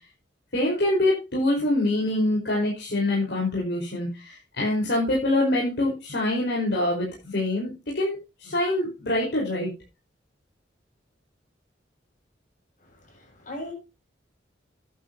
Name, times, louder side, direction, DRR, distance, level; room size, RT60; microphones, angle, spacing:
voice 1, 0.5-9.7, left 1 dB, 65° left, 5.2 m, -25 dB
voice 2, 12.8-13.7, left 1 dB, 45° left, 7.3 m, -39 dB
12.5 x 11.0 x 3.0 m
head